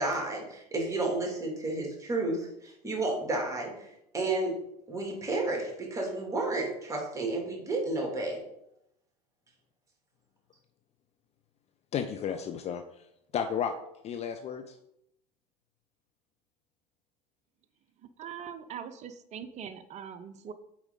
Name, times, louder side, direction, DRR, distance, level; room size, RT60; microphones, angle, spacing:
voice 1, 0.0-8.4, right 2 dB, 15° right, 0 dB, 2.7 m, -32 dB
voice 2, 11.9-12.8 13.3-13.7 14.0-14.7, left 8 dB, 30° left, 7 dB, 0.6 m, -32 dB
voice 3, 18.2-20.5, right 8 dB, 35° right, 10 dB, 0.7 m, -42 dB
8.0 x 4.5 x 3.8 m, 0.78 s
figure-of-eight pair, 70°, 20 cm